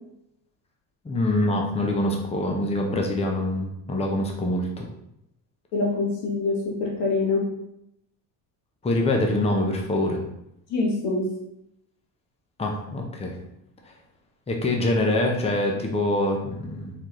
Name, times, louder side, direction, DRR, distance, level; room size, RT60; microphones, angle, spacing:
voice 1, 1.0-4.9 8.8-10.2 12.6-13.4 14.5-16.9, left 1 dB, 15° left, 1 dB, 0.7 m, -25 dB
voice 2, 5.7-7.5 10.7-11.2, left 3 dB, 70° left, -1 dB, 1.2 m, -25 dB
4.1 x 3.9 x 3.1 m, 0.81 s
cardioid pair, 115°, 44 cm